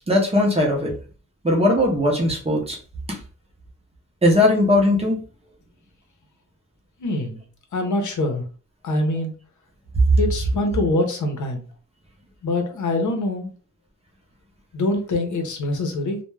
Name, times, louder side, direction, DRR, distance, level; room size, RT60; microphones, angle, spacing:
voice 1, 0.1-0.9 1.4-2.8 3.1-3.2 4.2-5.2, left 1 dB, 20° right, -1 dB, 0.6 m, -19 dB
voice 2, 7.0-7.4 7.7-8.4 8.8-9.3 10.2-11.6 12.4-13.5 14.7-16.2, left 2 dB, 70° left, 4 dB, 0.7 m, -24 dB
2.2 x 2.1 x 3.2 m, 0.38 s
wide cardioid pair, 170°, 31 cm